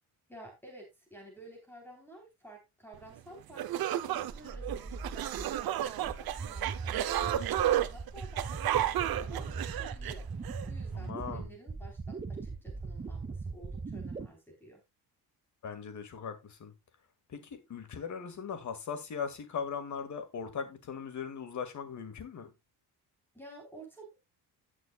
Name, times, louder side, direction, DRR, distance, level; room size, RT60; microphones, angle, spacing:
voice 1, 0.3-10.2 10.7-14.8 23.3-24.1, right 1 dB, 5° left, 3.7 m, -52 dB
sound 1, 3.2-3.3 3.6-10.7, right 12 dB, 65° right, 0.8 m, -32 dB
sound 2, 4.3-14.3, right 4 dB, 20° right, 0.7 m, -40 dB
voice 2, 10.9-11.5 15.6-16.7 17.3-22.5, left 6 dB, 50° left, 2.1 m, -39 dB
17.0 x 6.2 x 2.3 m
cardioid pair, 145°, 38 cm